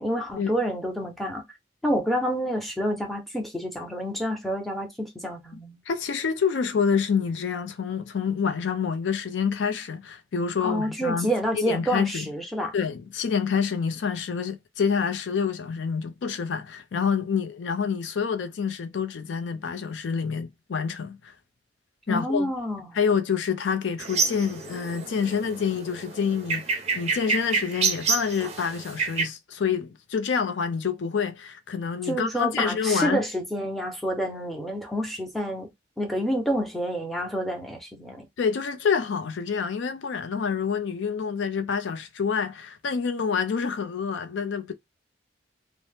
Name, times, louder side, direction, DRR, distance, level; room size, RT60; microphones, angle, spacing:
voice 1, 0.0-1.4 1.8-5.8 10.6-12.7 22.1-23.0 32.1-35.7 36.0-38.3, equal, ahead, 0.7 m, -28 dB
voice 2, 5.9-12.3 12.7-21.3 22.1-22.5 22.9-33.2 38.4-44.7, left 6 dB, 80° left, 0.4 m, -27 dB
sound 1, 24.0-29.2, right 5 dB, 35° right, 0.5 m, -28 dB
2.7 x 2.0 x 3.3 m
head